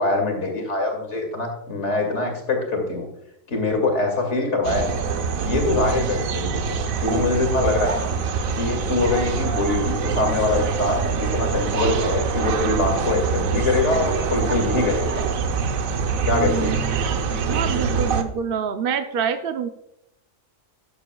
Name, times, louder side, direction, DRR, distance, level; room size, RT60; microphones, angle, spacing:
voice 1, 0.0-3.1 3.5-5.0 5.4-8.1 8.5-15.2 16.2-16.7, left 3 dB, 60° left, 3 dB, 2.6 m, -23 dB
sound 1, 4.6-18.2, right 5 dB, 90° right, 1.3 m, -24 dB
voice 2, 16.3-16.8 17.5-19.7, right 7 dB, 55° right, 7 dB, 0.7 m, -26 dB
12.5 x 9.8 x 2.3 m, 0.82 s
omnidirectional pair, 1.4 m